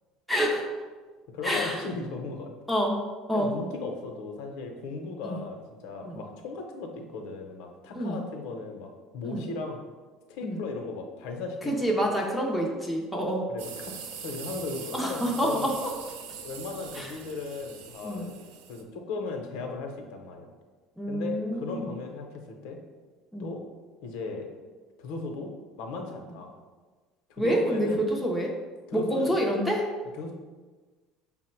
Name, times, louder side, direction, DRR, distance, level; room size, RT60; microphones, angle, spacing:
voice 1, 0.3-0.6 1.4-1.8 2.7-3.0 3.3-3.5 5.2-5.4 6.0-6.1 7.9-8.2 9.2-9.5 10.4-10.6 11.7-13.5 14.9-15.9 16.9-17.1 18.0-18.3 21.0-21.9 23.3-23.5 27.4-28.5 28.9-29.9, equal, ahead, -1 dB, 0.4 m, -27 dB
voice 2, 1.3-2.5 3.3-9.8 10.3-11.7 13.5-15.7 16.4-18.4 18.7-20.5 21.1-22.8 23.4-23.6 24.0-24.5 25.0-25.5 25.8-26.5 27.3-28.0 28.9-29.4 30.1-30.3, left 3 dB, 70° left, 3 dB, 0.6 m, -37 dB
sound 1, 13.6-18.8, right 7 dB, 90° right, 0.5 m, -42 dB
5.6 x 2.0 x 4.4 m, 1.4 s
cardioid pair, 170°, 0 cm